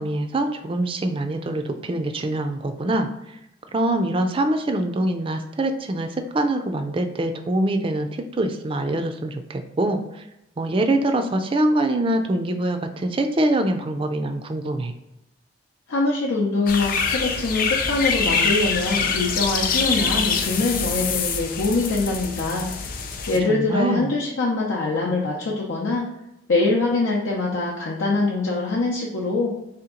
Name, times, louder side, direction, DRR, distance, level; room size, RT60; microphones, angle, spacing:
voice 1, 0.0-3.4 3.7-10.2 10.6-14.9 23.5-24.1, right 1 dB, 25° right, 6 dB, 0.3 m, -24 dB
voice 2, 15.9-22.7 23.3-26.0 26.5-29.5, left 3 dB, 85° left, -3 dB, 0.6 m, -23 dB
sound 1, 16.7-23.4, left 5 dB, 45° left, 0.4 m, -25 dB
3.5 x 2.9 x 3.7 m, 0.87 s
head